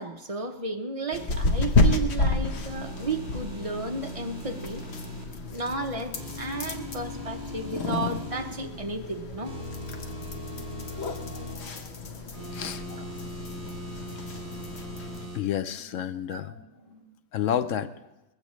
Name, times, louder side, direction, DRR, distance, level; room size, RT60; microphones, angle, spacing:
voice 1, 0.0-4.8 5.5-9.5 13.0-13.1 16.3-16.4, right 3 dB, 30° right, 4 dB, 0.8 m, -33 dB
sound 1, 1.1-15.3, left 2 dB, 55° left, 1.2 m, -31 dB
sound 2, 2.6-5.2 6.1-8.5 9.4-11.5 12.3-15.4, equal, 45° right, 4.0 m, -40 dB
sound 3, 7.1-17.0, right 3 dB, 65° right, 2.7 m, -53 dB
voice 2, 11.2-11.8 12.5-13.1 15.3-16.5 17.3-17.9, left 9 dB, 70° left, 12 dB, 1.0 m, -31 dB
20.5 x 15.5 x 3.2 m, 0.99 s
omnidirectional pair, 1.4 m